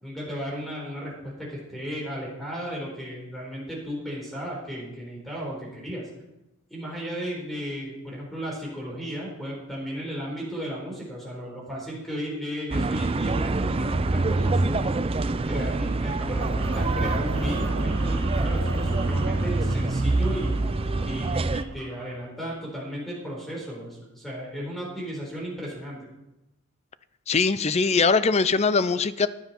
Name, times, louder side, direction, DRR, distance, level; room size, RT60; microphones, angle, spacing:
voice 1, 0.0-6.1 6.7-14.9 15.5-20.6 21.0-26.0, equal, ahead, -3 dB, 4.4 m, -34 dB
sound 1, 12.7-21.6, right 2 dB, 25° right, 0.4 m, -25 dB
sound 2, 16.4-22.3, right 1 dB, 80° right, 4.1 m, -39 dB
voice 2, 27.3-29.3, left 4 dB, 30° left, 14 dB, 0.4 m, -21 dB
15.0 x 10.5 x 4.4 m, 0.94 s
head